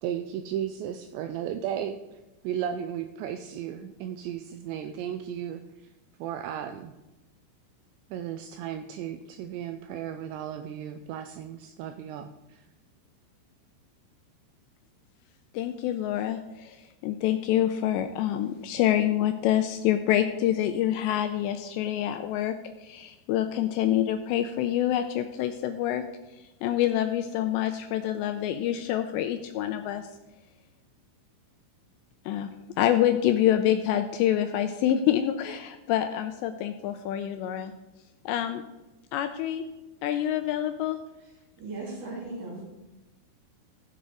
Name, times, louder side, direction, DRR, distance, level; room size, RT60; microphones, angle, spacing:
voice 1, 0.0-2.2 2.4-5.6 6.2-6.9 8.1-12.6, right 9 dB, 85° right, 8 dB, 2.6 m, -35 dB
voice 2, 15.5-22.5 22.8-26.0 26.6-30.1 32.3-32.5 32.8-37.7 38.3-38.6 39.1-39.6 40.0-41.0, left 11 dB, 85° left, 8 dB, 2.6 m, -26 dB
voice 3, 41.2-42.6, right 2 dB, 45° right, -3 dB, 4.7 m, -38 dB
15.0 x 8.0 x 3.8 m, 1.0 s
omnidirectional pair, 5.5 m